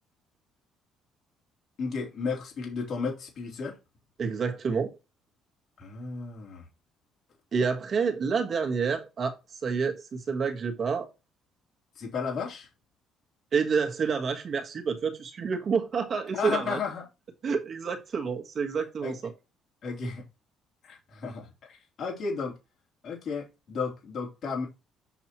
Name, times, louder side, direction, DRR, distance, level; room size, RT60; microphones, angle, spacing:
voice 1, 1.8-3.8 5.8-6.7 12.0-12.7 16.3-17.0 19.0-19.2 19.8-20.2 20.8-22.6 23.0-24.7, left 5 dB, 45° left, 3.4 m, -33 dB
voice 2, 4.2-5.0 7.5-11.1 13.5-16.8 17.4-19.3, right 5 dB, 35° right, 1.4 m, -28 dB
7.1 x 5.9 x 3.0 m
cardioid pair, 155°, 0 cm